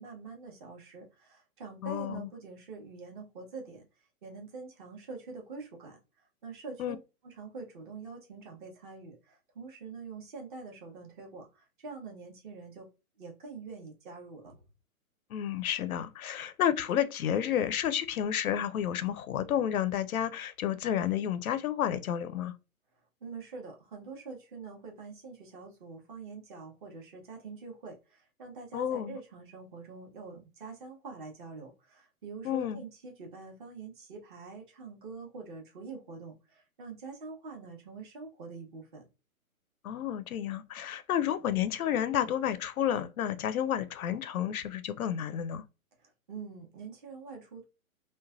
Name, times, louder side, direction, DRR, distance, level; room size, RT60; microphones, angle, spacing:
voice 1, 0.0-3.8 4.2-6.0 6.4-7.0 7.2-12.9 13.2-14.6 23.2-39.1 46.0-47.6, right 4 dB, 35° right, 1.0 m, -45 dB
voice 2, 1.8-2.3 6.8-7.0 15.3-22.5 28.7-29.2 32.4-32.8 39.8-45.6, left 10 dB, 75° left, 0.6 m, -31 dB
3.1 x 2.2 x 2.3 m
hypercardioid pair, 155°, 43 cm